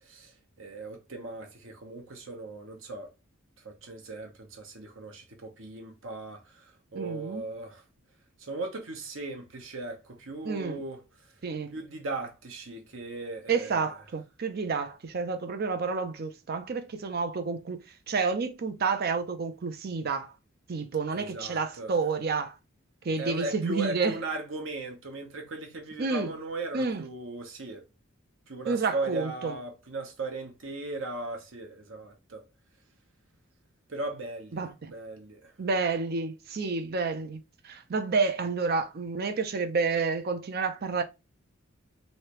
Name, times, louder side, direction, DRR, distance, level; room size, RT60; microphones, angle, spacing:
voice 1, 0.0-3.1 3.6-7.8 8.4-11.0 11.7-13.9 21.1-21.9 23.2-27.8 28.5-32.4 33.9-35.5, right 2 dB, 65° right, 1.0 m, -38 dB
voice 2, 6.9-7.5 10.4-10.8 11.4-11.7 13.5-20.3 20.7-22.6 23.0-24.2 26.0-26.3 26.7-27.0 28.7-29.6 34.5-34.9 35.6-41.0, right 4 dB, 45° right, 0.5 m, -30 dB
3.2 x 2.7 x 3.0 m
head